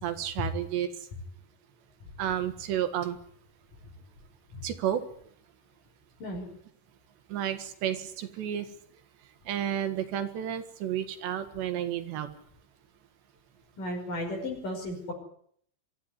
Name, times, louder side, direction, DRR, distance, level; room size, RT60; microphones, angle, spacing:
voice 1, 0.0-0.9 2.2-3.2 4.6-5.0 7.3-8.7 9.5-12.3, right 10 dB, 75° right, 10 dB, 3.9 m, -31 dB
voice 2, 13.8-15.1, left 1 dB, 50° left, 1 dB, 6.8 m, -34 dB
24.0 x 14.5 x 9.8 m, 0.64 s
omnidirectional pair, 5.2 m